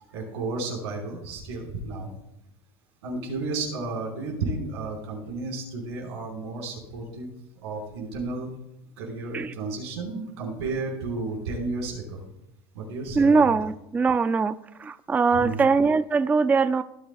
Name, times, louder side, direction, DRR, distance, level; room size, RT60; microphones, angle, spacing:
voice 1, 0.1-2.1 3.0-7.3 7.6-8.5 9.0-12.2 12.7-13.5 15.3-15.6, right 3 dB, 90° right, -1 dB, 5.0 m, -32 dB
voice 2, 13.2-14.5 14.8-16.8, right 4 dB, 10° right, 14 dB, 0.3 m, -21 dB
18.5 x 11.0 x 2.4 m, 0.85 s
supercardioid pair, 115°, 14 cm